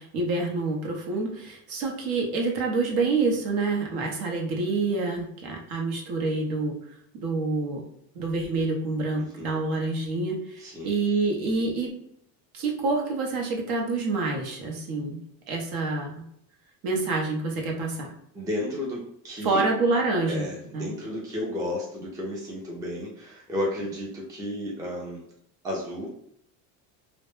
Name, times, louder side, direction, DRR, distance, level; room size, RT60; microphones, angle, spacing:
voice 1, 0.0-6.8 7.1-7.8 8.1-11.9 12.5-16.2 16.8-18.1 19.4-20.9, right 3 dB, 60° right, 1 dB, 0.7 m, -27 dB
voice 2, 9.1-9.6 10.6-11.0 18.3-19.6 20.3-25.2 25.6-26.1, left 1 dB, 10° right, -3 dB, 0.4 m, -33 dB
2.1 x 2.0 x 3.0 m, 0.71 s
cardioid pair, 140°, 40 cm